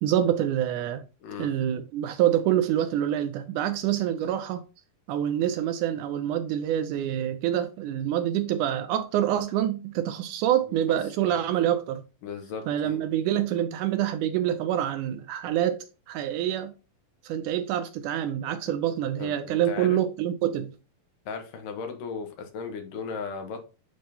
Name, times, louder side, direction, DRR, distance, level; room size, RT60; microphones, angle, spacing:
voice 1, 0.0-1.0 1.4-4.6 5.1-12.0 12.7-16.7 17.2-20.7, right 11 dB, 80° right, 1.9 m, -26 dB
voice 2, 12.2-13.0 13.5-13.6 19.2-20.0 21.3-23.6, left 5 dB, 75° left, 2.9 m, -36 dB
10.0 x 3.8 x 2.8 m
omnidirectional pair, 3.9 m